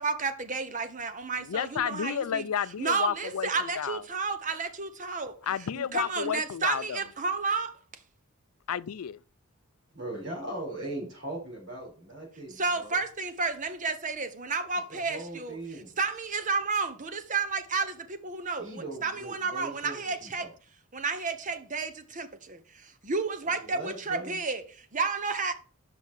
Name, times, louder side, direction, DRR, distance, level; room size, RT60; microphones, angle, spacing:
voice 1, 0.0-2.4 2.8-5.4 5.7-7.8 12.5-15.6 16.0-20.5 20.9-22.6 23.0-25.5, right 4 dB, 35° right, 0.9 m, -31 dB
voice 2, 1.4-4.0 5.4-7.0 8.7-9.2, left 8 dB, 85° left, 0.4 m, -31 dB
voice 3, 9.9-13.0 14.9-15.8 18.6-20.5 23.6-24.3, right 1 dB, 60° right, 4.5 m, -39 dB
6.1 x 5.7 x 6.3 m
head